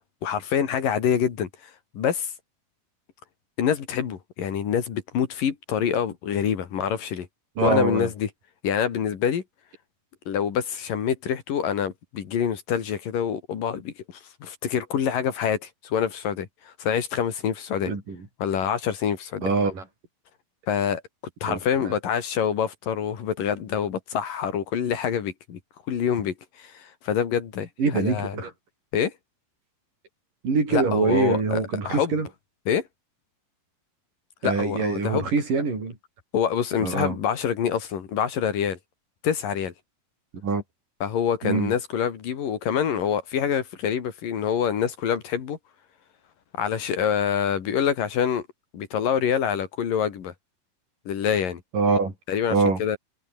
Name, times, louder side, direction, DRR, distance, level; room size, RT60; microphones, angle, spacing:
voice 1, 0.2-2.3 3.6-7.3 7.6-8.3 8.6-9.4 10.3-13.9 14.4-17.9 18.4-19.5 20.7-21.0 21.4-25.6 25.9-28.4 28.9-29.1 30.7-32.1 32.7-32.8 34.4-35.3 36.3-38.8 39.2-39.7 41.0-45.6 46.6-48.4 48.7-50.3 51.1-51.6 52.3-53.0, left 8 dB, 85° left, 4.2 m, -26 dB
voice 2, 7.6-8.1 17.9-18.2 19.4-19.8 21.4-21.6 21.9-22.0 27.8-28.5 30.4-32.3 34.4-36.0 36.8-37.2 40.4-40.6 41.4-41.7 51.7-52.1 52.5-52.8, right 4 dB, 75° right, 8.0 m, -24 dB
omnidirectional pair, 3.8 m